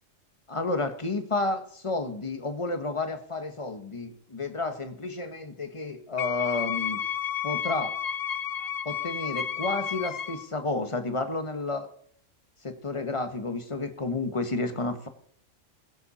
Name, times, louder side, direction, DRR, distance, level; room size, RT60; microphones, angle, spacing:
voice 1, 0.5-7.0 7.4-7.9 8.8-11.9 12.6-15.1, left 3 dB, 25° left, 8 dB, 1.3 m, -31 dB
Wind instrument woodwind instrument, 6.2-10.5, left 9 dB, 55° left, 0.9 m, -31 dB
21.0 x 7.8 x 4.3 m, 0.63 s
omnidirectional pair, 1.3 m